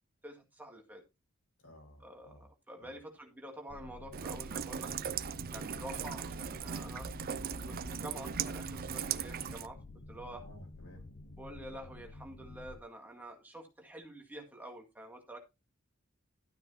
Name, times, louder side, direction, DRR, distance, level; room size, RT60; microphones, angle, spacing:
voice 1, 0.2-1.0 2.0-4.9 5.5-7.1 7.7-9.8 10.1-10.4 11.4-15.4, right 1 dB, 10° right, 2.0 m, -48 dB
voice 2, 1.6-2.5 2.8-3.0 5.6-5.9 10.3-11.1, equal, 85° left, 5.0 m, -56 dB
sound 1, 3.7-12.8, left 2 dB, 50° left, 0.7 m, -50 dB
Rain, 4.1-9.7, right 7 dB, 45° right, 0.5 m, -38 dB
12.5 x 9.0 x 2.8 m
head